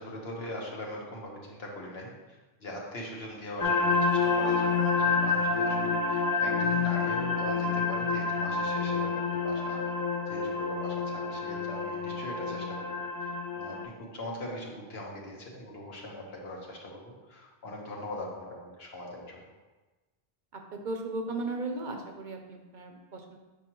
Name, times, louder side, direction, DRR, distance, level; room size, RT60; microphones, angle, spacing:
voice 1, 0.0-9.8 10.3-12.9 13.2-19.4, left 1 dB, 75° left, -2 dB, 1.4 m, -41 dB
sound 1, 3.6-13.8, left 4 dB, 30° left, 0.4 m, -28 dB
voice 2, 20.8-23.4, right 2 dB, 55° right, 3 dB, 0.7 m, -36 dB
6.9 x 5.1 x 3.0 m, 1.2 s
omnidirectional pair, 1.0 m